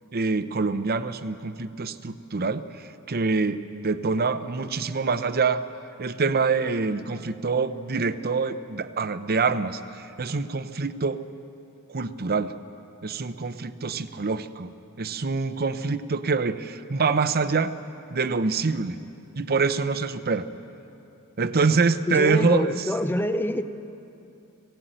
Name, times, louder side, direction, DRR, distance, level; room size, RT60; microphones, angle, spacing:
voice 1, 0.1-5.6 6.0-11.2 11.9-12.5 13.0-14.7 15.0-17.7 18.1-19.0 19.4-20.5 21.4-22.9, right 4 dB, 45° right, 12 dB, 0.7 m, -25 dB
voice 2, 22.1-23.6, left 1 dB, 10° left, 9 dB, 0.6 m, -25 dB
19.5 x 16.5 x 9.1 m, 2.8 s
head